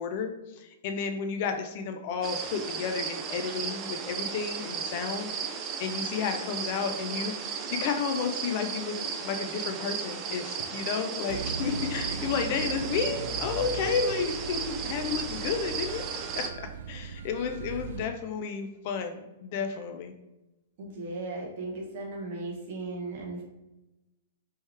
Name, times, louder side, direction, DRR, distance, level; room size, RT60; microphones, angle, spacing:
voice 1, 0.0-5.5 5.8-16.0 16.3-20.1, left 6 dB, 35° left, 6 dB, 0.5 m, -32 dB
sound 1, 2.2-16.5, right 6 dB, 20° right, 0.4 m, -35 dB
sound 2, 11.3-18.0, right 5 dB, 75° right, 0.5 m, -39 dB
voice 2, 20.8-23.4, right 2 dB, 40° right, -1 dB, 1.2 m, -36 dB
4.6 x 3.0 x 3.3 m, 0.98 s
hypercardioid pair, 170°, 0 cm